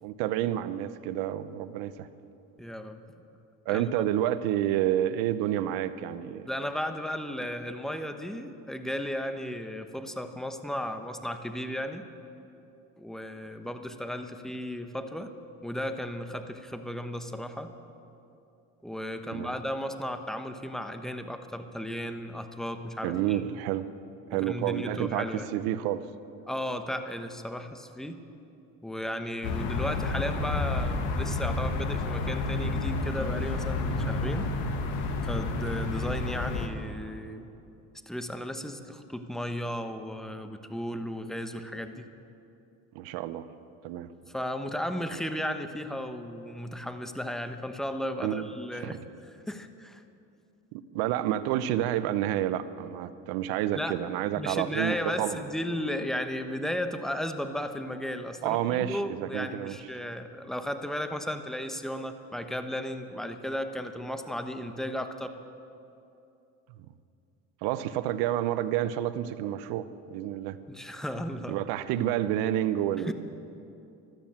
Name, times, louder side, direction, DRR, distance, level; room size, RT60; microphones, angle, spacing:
voice 1, 0.0-2.1 3.7-6.4 19.3-19.5 23.0-23.9 24.3-26.0 42.9-43.5 43.8-44.1 48.2-48.4 48.8-49.0 50.7-55.4 58.4-59.8 67.6-70.6 71.5-73.1, right 12 dB, 80° right, 13 dB, 0.8 m, -29 dB
voice 2, 2.6-3.0 3.7-4.1 6.4-12.0 13.0-15.3 15.6-17.7 18.8-23.5 24.5-25.5 26.5-28.2 28.8-34.5 35.2-37.5 38.1-42.0 44.3-50.0 53.7-54.0 54.4-65.3 70.7-71.6 73.0-73.1, equal, ahead, 7 dB, 1.1 m, -35 dB
sound 1, 29.4-36.7, left 3 dB, 85° left, 1.7 m, -30 dB
13.0 x 12.5 x 8.8 m, 2.7 s
supercardioid pair, 95°, 36 cm